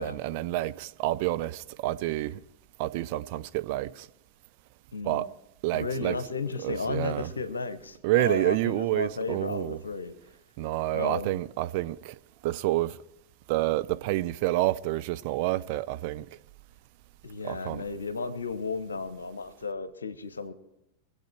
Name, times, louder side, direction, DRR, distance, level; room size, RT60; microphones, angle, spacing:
voice 1, 0.0-2.4 2.8-4.1 5.0-5.3 5.6-6.2 6.6-7.3 8.0-9.8 10.6-12.2 12.4-13.0 13.5-16.3 17.4-17.8, right 16 dB, 45° right, 0.5 m, -28 dB
voice 2, 4.9-5.2 5.7-10.1 10.9-11.4 17.2-20.5, left 4 dB, 75° left, 0.9 m, -34 dB
23.5 x 8.1 x 4.5 m
figure-of-eight pair, 90°, 0 cm